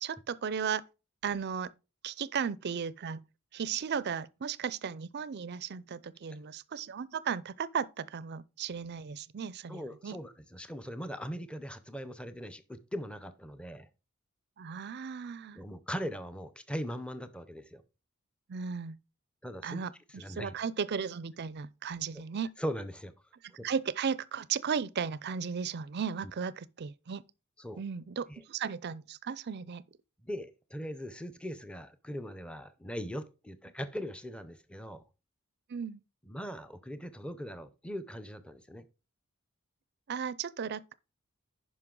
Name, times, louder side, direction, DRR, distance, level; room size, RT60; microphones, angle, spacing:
voice 1, 0.0-0.8 1.2-1.7 2.0-3.2 3.5-10.2 14.6-15.6 18.5-19.0 19.6-22.5 23.6-27.2 27.8-29.8 35.7-36.0 40.1-40.9, right 6 dB, 50° right, 0.4 m, -35 dB
voice 2, 9.7-13.9 15.5-17.8 19.4-19.8 20.1-20.5 22.1-22.2 22.6-23.1 23.6-23.7 27.6-27.8 28.3-28.4 30.2-35.0 36.2-38.9, equal, 5° left, 0.5 m, -40 dB
10.5 x 5.2 x 3.8 m
head